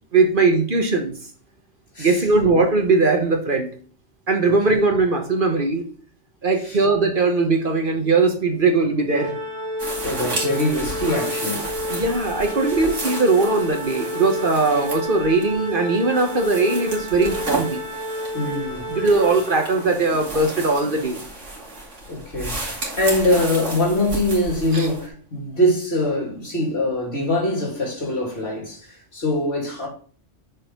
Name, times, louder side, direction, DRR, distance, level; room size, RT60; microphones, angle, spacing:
voice 1, 0.1-1.1 2.0-3.7 4.3-5.8 6.4-9.3 11.9-17.8 18.9-21.2 24.7-24.9, right 3 dB, 45° right, 1.3 m, -20 dB
voice 2, 1.9-2.6 4.4-4.8 6.6-6.8 10.0-11.7 18.3-19.1 22.1-29.9, left 1 dB, 60° left, 3.0 m, -23 dB
Organ, 9.1-20.0, left 1 dB, 25° right, 1.9 m, -30 dB
sound 1, 9.8-25.1, right 2 dB, 85° right, 2.6 m, -33 dB
6.6 x 4.3 x 5.2 m
omnidirectional pair, 1.2 m